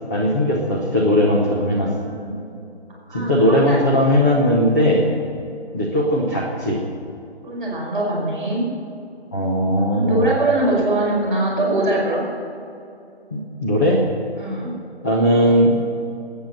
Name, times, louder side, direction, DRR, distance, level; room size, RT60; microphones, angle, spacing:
voice 1, 0.1-1.9 3.1-5.1 5.7-6.8 9.3-10.3 13.6-14.0 15.0-15.8, equal, 15° left, -4 dB, 1.1 m, -18 dB
voice 2, 1.8-2.4 3.1-3.8 7.4-8.6 9.6-12.2 14.4-14.7, right 1 dB, ahead, -15 dB, 4.2 m, -22 dB
20.5 x 9.3 x 6.5 m, 2.7 s
figure-of-eight pair, 175°, 33 cm